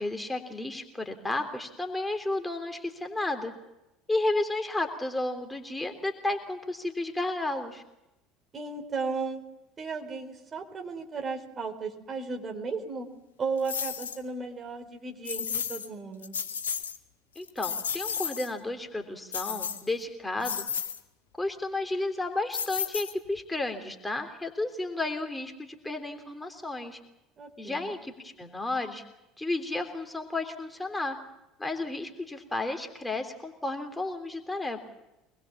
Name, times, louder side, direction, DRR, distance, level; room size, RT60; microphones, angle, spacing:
voice 1, 0.0-3.5 4.1-7.8 17.3-20.6 21.4-27.0 27.6-29.0 29.4-31.2 31.6-34.8, left 2 dB, 10° left, 4 dB, 3.3 m, -32 dB
voice 2, 8.5-9.4 9.8-13.1 13.4-16.3 27.4-27.9, right 4 dB, 35° right, 5 dB, 4.2 m, -35 dB
sound 1, 13.7-14.2 15.3-15.9 16.2-17.0 17.4-18.5 19.3-20.0 20.4-21.0 22.5-23.4, left 7 dB, 80° left, 1.6 m, -33 dB
25.0 x 21.0 x 7.4 m, 0.93 s
figure-of-eight pair, 65°, 0 cm